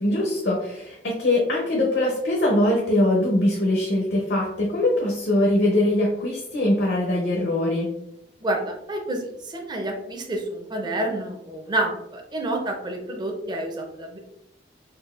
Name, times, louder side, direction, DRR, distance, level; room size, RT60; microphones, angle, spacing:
voice 1, 0.0-7.9, left 1 dB, 70° left, -2 dB, 0.7 m, -22 dB
voice 2, 8.4-14.2, right 1 dB, 25° right, 2 dB, 0.5 m, -29 dB
3.9 x 2.4 x 2.4 m, 0.82 s
head